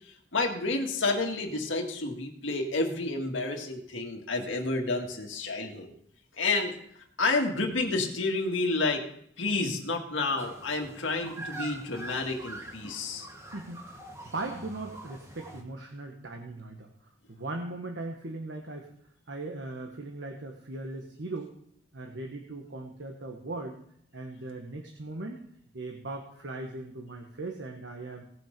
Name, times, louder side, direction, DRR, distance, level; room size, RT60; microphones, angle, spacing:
voice 1, 0.1-5.9 6.4-6.8 7.2-9.0 9.4-13.3, left 3 dB, 90° left, 2 dB, 1.9 m, -30 dB
sound 1, 10.4-15.6, right 2 dB, 15° right, 1.6 m, -44 dB
voice 2, 13.5-13.8 14.3-16.9 17.3-18.9 19.3-21.5 21.9-23.8 24.1-25.4 25.7-28.2, right 2 dB, 75° right, 2 dB, 1.3 m, -38 dB
18.0 x 6.2 x 5.2 m, 0.67 s
head